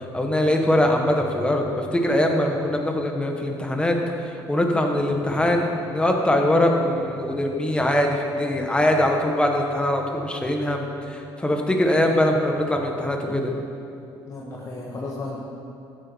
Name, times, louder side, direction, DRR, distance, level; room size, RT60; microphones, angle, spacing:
voice 1, 0.0-4.0 4.2-13.5, left 1 dB, 10° left, 2 dB, 1.6 m, -22 dB
voice 2, 11.8-12.2 13.2-13.4 14.2-15.4, left 3 dB, 35° left, -3 dB, 1.6 m, -35 dB
14.5 x 8.4 x 4.7 m, 2.6 s
cardioid pair, 90°, 9 cm